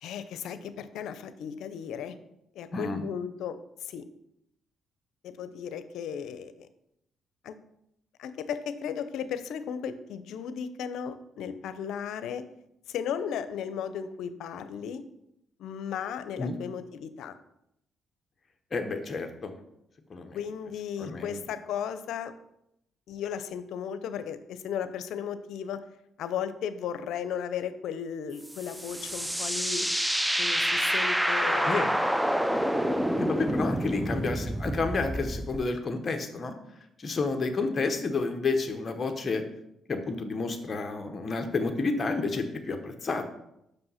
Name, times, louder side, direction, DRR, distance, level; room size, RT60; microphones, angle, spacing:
voice 1, 0.0-2.2 2.5-4.0 5.2-6.7 7.4-7.5 8.2-12.4 12.9-15.0 15.6-17.4 20.3-22.3 23.1-25.8 26.2-29.9 30.4-31.8 33.2-33.6, left 8 dB, 80° left, 12 dB, 0.6 m, -35 dB
voice 2, 2.7-3.0 16.4-16.6 18.7-19.5 20.1-20.4 21.0-21.4 31.6-31.9 33.2-36.5 37.0-39.4 39.9-43.2, left 3 dB, 35° left, 5 dB, 0.9 m, -30 dB
sound 1, 28.5-35.6, equal, 5° right, 0.5 m, -28 dB
6.2 x 5.3 x 5.6 m, 0.80 s
cardioid pair, 90°, 0 cm